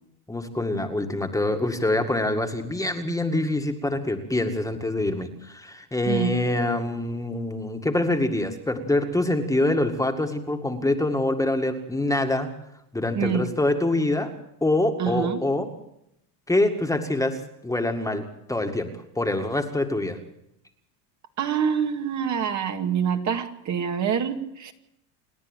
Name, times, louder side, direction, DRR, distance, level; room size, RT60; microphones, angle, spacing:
voice 1, 0.3-12.5 12.9-14.3 14.6-15.7 16.5-17.4 17.6-18.2 18.5-18.9 19.2-20.2, left 2 dB, 5° left, 5 dB, 2.1 m, -25 dB
voice 2, 13.1-13.5 15.0-15.4 21.4-24.7, right 7 dB, 40° right, 5 dB, 2.0 m, -26 dB
28.5 x 10.0 x 9.1 m, 0.78 s
supercardioid pair, 120°, 44 cm